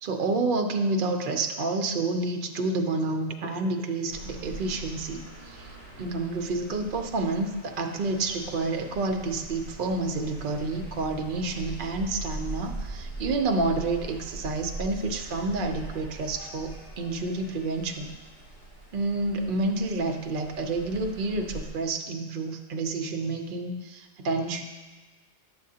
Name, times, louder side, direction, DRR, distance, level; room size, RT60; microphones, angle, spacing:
voice 1, 0.0-18.1 18.9-24.6, right 3 dB, 55° right, 3 dB, 0.7 m, -29 dB
sound 1, 4.1-21.7, right 2 dB, 75° left, 2.1 m, -42 dB
9.7 x 7.3 x 2.8 m, 1.3 s
omnidirectional pair, 1.2 m